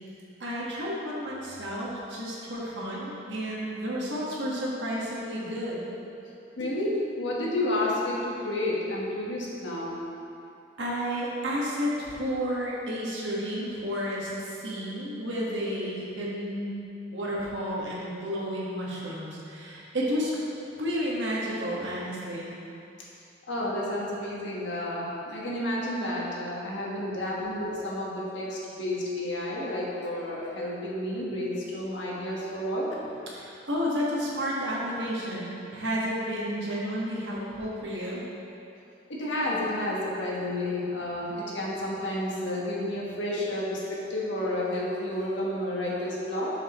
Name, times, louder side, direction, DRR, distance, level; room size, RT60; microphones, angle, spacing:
voice 1, 0.4-5.8 10.8-16.7 17.1-20.3 20.8-22.5 33.3-38.2, equal, 75° right, -6 dB, 1.6 m, -31 dB
voice 2, 6.6-9.9 23.5-33.1 39.1-46.5, left 1 dB, 80° left, -5 dB, 1.5 m, -31 dB
7.3 x 7.2 x 3.1 m, 2.7 s
head